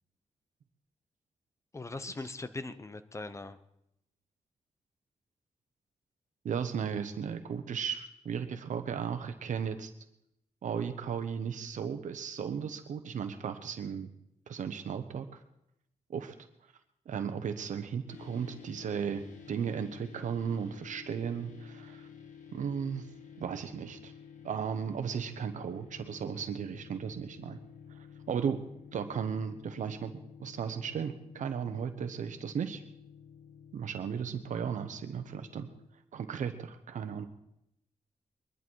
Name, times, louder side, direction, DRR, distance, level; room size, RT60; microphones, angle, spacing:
voice 1, 1.7-3.6, left 3 dB, 25° left, 12 dB, 1.0 m, -40 dB
voice 2, 6.4-9.9 10.6-14.1 14.5-15.4 16.1-16.3 17.1-22.1 22.5-23.1 23.4-24.1 24.4-27.6 28.3-28.6 28.9-30.1 30.4-32.8 33.7-35.7 36.1-37.3, right 7 dB, 85° right, 8 dB, 1.1 m, -35 dB
sound 1, 18.1-35.9, left 7 dB, 85° left, 1.7 m, -51 dB
22.5 x 11.5 x 4.7 m, 0.81 s
wide cardioid pair, 100°, 13 cm